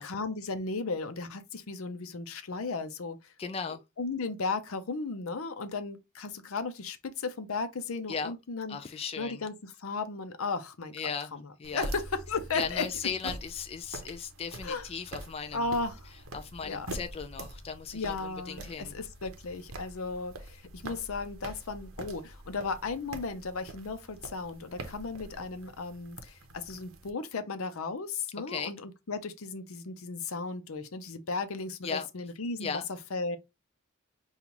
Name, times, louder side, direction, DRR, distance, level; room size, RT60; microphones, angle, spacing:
voice 1, 0.0-3.3 4.0-8.8 9.2-10.9 11.3-12.8 14.6-14.8 15.5-16.1 16.6-16.9 17.9-33.4, left 4 dB, 85° left, 0.7 m, -35 dB
voice 2, 3.4-3.8 8.1-8.3 8.7-9.4 10.9-11.3 11.6-11.9 12.5-15.7 16.3-18.9 28.5-28.7 31.8-32.1 32.6-32.9, left 6 dB, 30° left, 0.3 m, -37 dB
sound 1, 11.6-27.1, right 2 dB, 80° right, 0.7 m, -45 dB
5.4 x 2.4 x 2.9 m
head